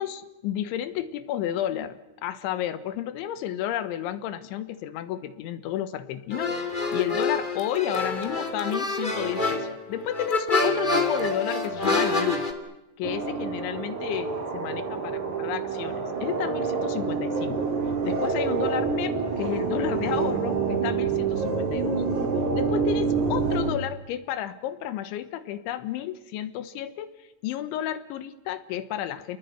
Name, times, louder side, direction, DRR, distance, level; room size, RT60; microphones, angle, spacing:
voice 1, 0.0-12.5 13.0-22.0 22.5-29.4, left 11 dB, 75° left, 13 dB, 3.3 m, -32 dB
sound 1, 6.3-12.5, left 3 dB, 35° left, 0.8 m, -27 dB
sound 2, 13.0-23.7, right 5 dB, 40° right, 4.2 m, -27 dB
29.0 x 20.0 x 9.5 m, 0.97 s
omnidirectional pair, 5.9 m